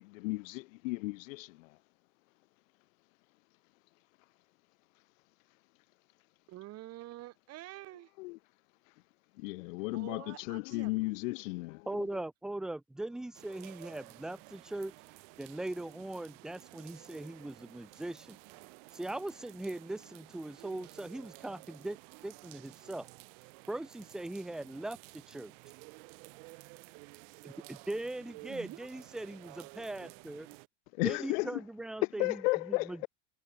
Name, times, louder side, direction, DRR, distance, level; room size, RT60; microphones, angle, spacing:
voice 1, 0.0-1.7 8.2-8.4 9.4-11.9 31.0-31.6 32.2-33.1, left 24 dB, 65° left, 0.9 m, -34 dB
voice 2, 6.5-8.1 9.9-11.1 28.5-28.9 30.0-30.2, right 16 dB, 35° right, 2.8 m, -48 dB
voice 3, 11.9-14.9 15.4-18.4 18.9-22.0 22.2-23.1 23.7-25.5 27.7-30.5 31.0-33.1, right 1 dB, ahead, 0.4 m, -40 dB
sound 1, 13.3-30.7, right 38 dB, 55° right, 5.2 m, -53 dB
supercardioid pair, 160°, 42 cm